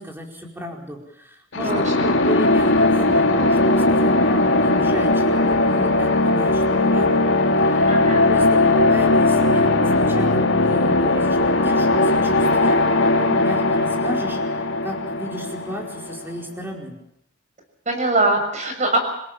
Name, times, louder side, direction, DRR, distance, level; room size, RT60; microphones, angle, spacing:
voice 1, 0.0-7.3 7.6-8.0 8.3-14.4 14.8-17.0, equal, 10° right, 1 dB, 4.6 m, -33 dB
sound 1, 1.5-16.2, left 2 dB, 75° left, 2.3 m, -18 dB
voice 2, 7.8-8.3 17.9-19.0, right 2 dB, 40° right, 5 dB, 6.5 m, -21 dB
27.0 x 17.5 x 7.4 m, 0.76 s
head